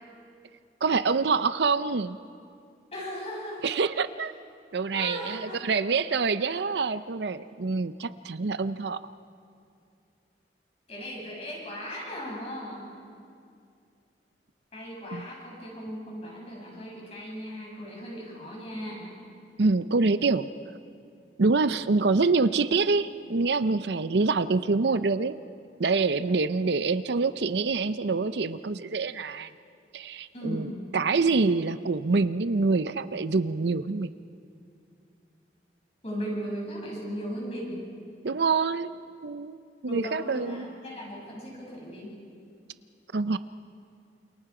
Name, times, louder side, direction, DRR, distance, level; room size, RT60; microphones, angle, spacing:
voice 1, 0.8-2.2 3.6-4.3 4.7-9.0 15.1-15.2 19.6-20.5 21.4-25.4 25.8-29.5 29.9-30.7 30.9-34.1 38.2-39.0 39.2-39.6 39.8-40.7 43.1-43.4, right 4 dB, 65° right, 13 dB, 0.6 m, -26 dB
voice 2, 2.9-3.7 4.9-5.6 10.9-12.8 14.7-19.1 30.3-30.9 36.0-37.8 39.9-42.1, equal, 35° left, -3 dB, 7.6 m, -37 dB
29.0 x 28.0 x 4.9 m, 2.4 s
head